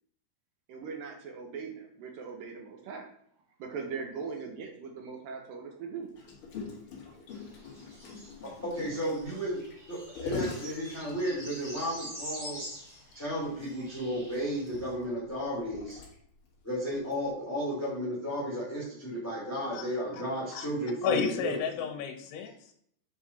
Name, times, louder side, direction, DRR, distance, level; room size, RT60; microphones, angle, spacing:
voice 1, 0.7-3.1 3.6-6.1, right 5 dB, 75° right, 3 dB, 2.2 m, -40 dB
Gurgling, 6.2-11.7 12.2-12.3 12.6-12.8 13.1-13.2 14.0-16.5 17.1-17.3, left 4 dB, 55° left, 1.5 m, -42 dB
sound 1, 7.3-14.9, equal, 10° right, 2.6 m, -46 dB
voice 2, 8.6-9.6 9.9-12.6 13.1-16.0 16.6-21.6, equal, 5° left, -7 dB, 1.7 m, -33 dB
voice 3, 21.0-22.7, left 7 dB, 75° left, 3 dB, 2.9 m, -32 dB
8.3 x 4.8 x 4.1 m, 0.67 s
omnidirectional pair, 4.9 m